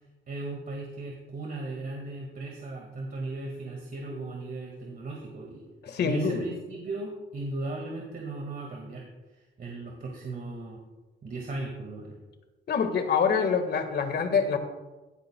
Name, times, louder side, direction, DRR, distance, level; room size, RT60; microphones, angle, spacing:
voice 1, 0.3-5.6 6.0-9.1 9.6-10.8 11.2-12.2, right 2 dB, 45° right, 0 dB, 2.0 m, -37 dB
voice 2, 5.8-6.4 12.7-14.6, left 6 dB, 55° left, 7 dB, 1.7 m, -25 dB
16.5 x 11.0 x 2.3 m, 1.1 s
cardioid pair, 90°, 20 cm